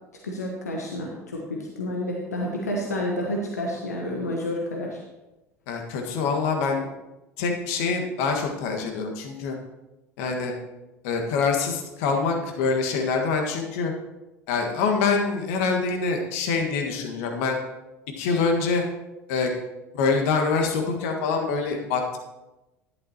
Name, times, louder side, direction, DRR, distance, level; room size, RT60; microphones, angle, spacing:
voice 1, 0.2-5.0, left 1 dB, 85° left, -1 dB, 1.2 m, -29 dB
voice 2, 5.7-6.9 7.4-9.6 10.2-10.5 11.0-13.9 14.5-17.6 18.2-18.8 19.3-19.5 19.9-22.2, left 4 dB, 65° left, 2 dB, 1.6 m, -25 dB
11.5 x 10.5 x 2.9 m, 1.0 s
figure-of-eight pair, 70°, 9 cm